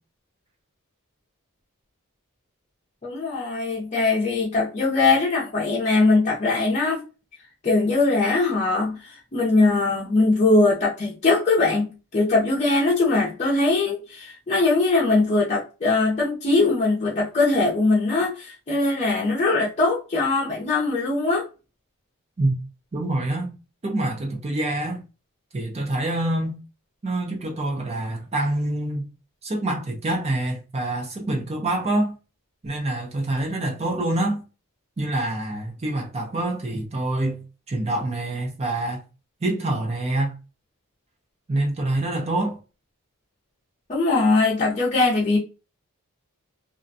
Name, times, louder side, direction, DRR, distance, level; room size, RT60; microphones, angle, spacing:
voice 1, 3.0-7.0 7.6-11.9 12.1-21.5 43.9-45.4, left 3 dB, 30° left, 0.6 m, -21 dB
voice 2, 22.9-23.5 23.8-25.0 25.5-26.6 27.0-29.0 29.4-32.1 32.6-34.4 35.0-37.4 37.7-39.0 39.4-40.3 41.5-42.6, right 1 dB, 30° right, 0.5 m, -26 dB
2.4 x 2.1 x 2.5 m
head